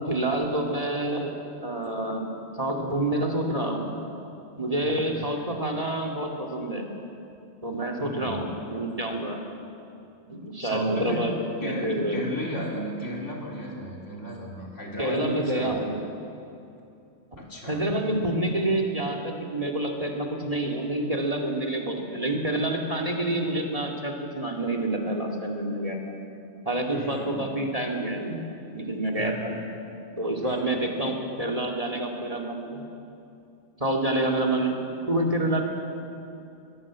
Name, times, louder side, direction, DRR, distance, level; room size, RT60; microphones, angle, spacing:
voice 1, 0.1-1.3 1.6-2.3 2.6-3.9 4.6-6.9 7.6-9.4 10.3-12.2 15.0-16.0 17.3-17.4 17.7-26.1 26.6-28.4 28.7-29.6 30.2-32.8 33.8-34.8 35.1-35.6, right 1 dB, 30° right, 2 dB, 2.5 m, -28 dB
voice 2, 4.8-5.5 8.0-8.4 10.6-11.3 11.6-15.7 17.4-17.9 26.9-27.4 29.2-29.7 30.4-30.9, equal, 70° left, -1 dB, 4.0 m, -35 dB
22.0 x 21.0 x 7.5 m, 2.7 s
omnidirectional pair, 1.3 m